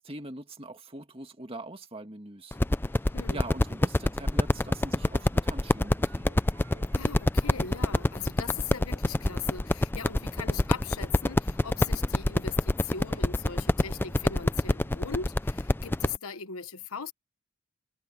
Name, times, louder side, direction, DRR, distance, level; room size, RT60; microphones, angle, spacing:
voice 1, 0.0-2.6 2.9-6.4, right 2 dB, 25° right, 2.1 m, -43 dB
sound 1, 2.5-16.2, left 1 dB, 10° left, 0.3 m, -26 dB
sound 2, 4.3-8.5, right 3 dB, 60° right, 4.3 m, -58 dB
voice 2, 6.9-17.1, left 6 dB, 85° left, 1.1 m, -39 dB
head